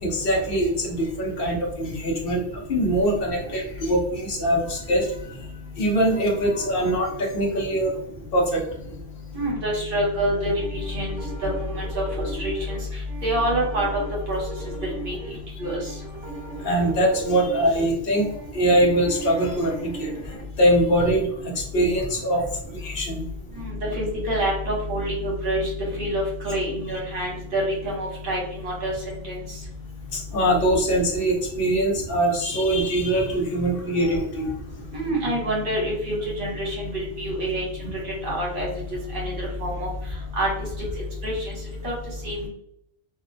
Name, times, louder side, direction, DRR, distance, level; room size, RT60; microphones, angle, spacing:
voice 1, 0.0-2.4 2.7-5.1 5.8-7.9 8.3-8.6 16.6-20.1 20.6-22.4 22.7-23.2 30.1-34.5, right 1 dB, 60° left, -1 dB, 0.8 m, -22 dB
voice 2, 9.3-11.2 11.4-12.0 12.4-12.8 13.2-14.0 14.3-14.4 15.0-15.2 15.6-15.8 23.6-25.7 26.0-29.4 34.9-37.6 38.2-38.7 39.1-39.9 40.4-40.5 41.2-41.3 41.8-41.9 42.2-42.4, right 1 dB, 60° right, -3 dB, 1.1 m, -26 dB
sound 1, 10.5-20.4, right 3 dB, 15° right, 0.9 m, -38 dB
2.4 x 2.0 x 2.5 m, 0.74 s
omnidirectional pair, 1.1 m